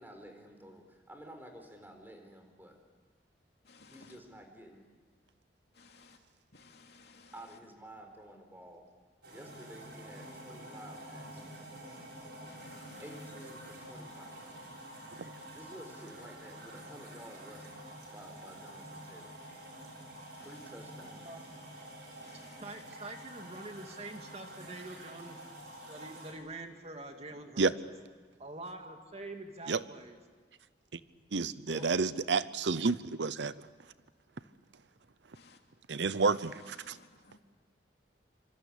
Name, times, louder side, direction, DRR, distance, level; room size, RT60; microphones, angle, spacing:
voice 1, 0.0-2.8 3.9-4.9 7.3-8.9 9.3-11.6 13.0-14.6 15.5-17.7 18.1-19.3 20.4-21.3 31.7-31.9, right 1 dB, 10° right, 4 dB, 4.2 m, -51 dB
voice 2, 3.6-4.2 5.7-6.2 6.5-7.6 12.4-13.2 20.4-20.7 22.2-22.8 31.7-31.9 35.3-35.6 36.2-37.4, left 4 dB, 65° left, 3 dB, 2.9 m, -58 dB
sound 1, 9.2-26.3, right 1 dB, 70° right, 7.1 m, -48 dB
voice 3, 22.6-25.4 25.9-27.7 28.4-30.2, right 2 dB, 35° right, 5 dB, 2.4 m, -45 dB
voice 4, 31.3-33.5 35.9-36.9, right 4 dB, 85° right, 15 dB, 0.8 m, -30 dB
26.5 x 26.0 x 8.7 m, 1.4 s
head